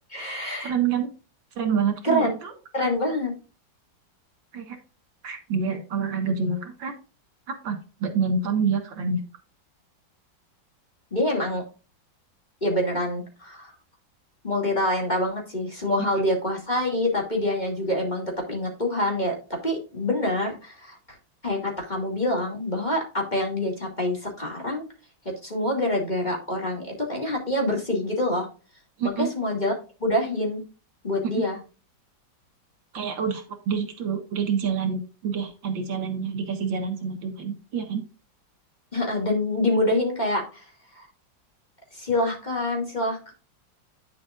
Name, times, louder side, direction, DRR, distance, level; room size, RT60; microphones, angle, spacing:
voice 1, 0.1-0.7 2.0-2.3 2.7-3.3 11.1-11.6 12.6-13.7 14.4-21.0 21.4-24.8 25.4-28.5 29.0-29.7 30.0-30.6 31.0-31.6 38.9-40.6 41.0-41.1 41.9-43.3, left 1 dB, 20° left, 0 dB, 2.6 m, -26 dB
voice 2, 0.6-1.1 1.6-2.5 4.5-4.8 5.2-6.9 7.5-9.3 29.0-29.3 31.4-31.5 32.9-38.0, right 6 dB, 80° right, 5 dB, 2.3 m, -27 dB
9.4 x 7.4 x 2.5 m, 0.34 s
omnidirectional pair, 2.1 m